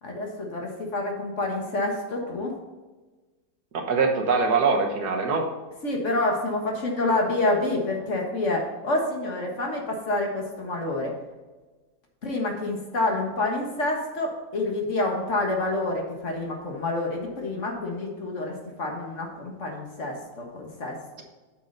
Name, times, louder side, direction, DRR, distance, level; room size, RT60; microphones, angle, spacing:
voice 1, 0.0-2.5 5.8-11.1 12.2-21.2, left 2 dB, 45° left, 0 dB, 1.6 m, -28 dB
voice 2, 3.7-5.4, right 4 dB, 65° right, 2 dB, 1.6 m, -23 dB
8.6 x 6.4 x 3.9 m, 1.2 s
omnidirectional pair, 1.9 m